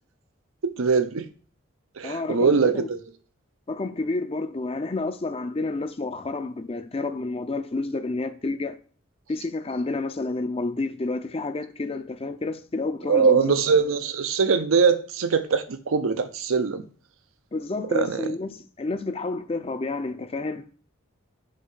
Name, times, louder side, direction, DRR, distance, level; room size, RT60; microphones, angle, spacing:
voice 1, 0.6-1.2 2.0-3.0 13.1-16.8 17.9-18.3, right 5 dB, 85° right, 0.6 m, -22 dB
voice 2, 2.0-2.9 3.7-8.8 9.3-13.6 17.5-20.6, left 3 dB, 30° left, 0.4 m, -30 dB
6.3 x 2.7 x 5.6 m
head